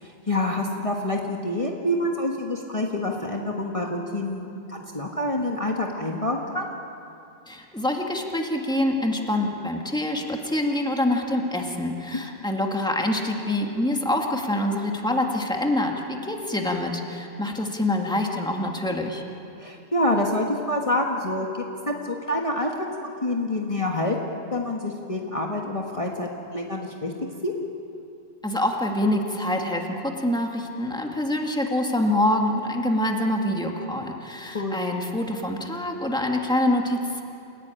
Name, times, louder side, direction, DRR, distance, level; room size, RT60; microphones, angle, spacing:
voice 1, 0.0-6.7 19.6-21.5 21.9-24.1 24.5-27.1 27.4-27.5 34.5-34.8, left 1 dB, 30° left, -1 dB, 1.6 m, -27 dB
voice 2, 7.5-19.2 28.4-37.2, left 1 dB, 5° left, 1 dB, 2.1 m, -25 dB
29.0 x 16.5 x 9.1 m, 2.7 s
omnidirectional pair, 1.1 m